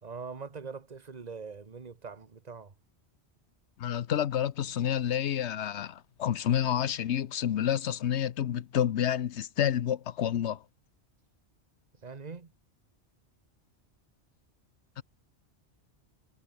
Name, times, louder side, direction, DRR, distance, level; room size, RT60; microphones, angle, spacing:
voice 1, 0.0-2.7 12.0-12.5, right 5 dB, 40° right, 1.4 m, -42 dB
voice 2, 3.8-10.6 15.0-15.1, left 10 dB, 85° left, 1.1 m, -29 dB
omnidirectional pair, 1.1 m